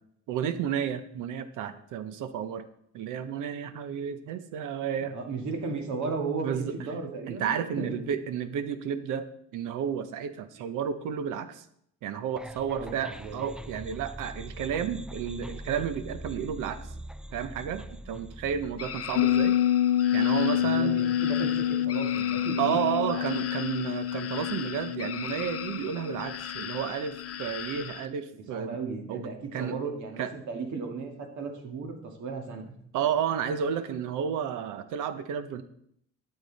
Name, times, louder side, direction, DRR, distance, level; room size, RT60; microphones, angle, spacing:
voice 1, 0.3-2.6 2.9-5.2 6.4-6.7 7.3-9.3 9.5-11.7 12.0-16.8 17.3-19.6 20.1-21.0 22.6-28.8 29.1-29.2 29.5-29.7 30.2-30.3 32.9-35.6, right 8 dB, 90° right, 11 dB, 0.9 m, -31 dB
voice 2, 5.0-7.9 12.8-13.4 20.6-23.2 28.5-32.7, right 4 dB, 70° right, 3 dB, 2.1 m, -35 dB
sound 1, 12.4-19.5, equal, 5° right, 0.3 m, -43 dB
sound 2, 18.8-28.1, left 8 dB, 50° left, 0.8 m, -39 dB
sound 3, 19.2-27.4 27.8-27.9, left 11 dB, 90° left, 0.5 m, -28 dB
12.5 x 7.0 x 4.0 m, 0.71 s
cardioid pair, 90°, 30 cm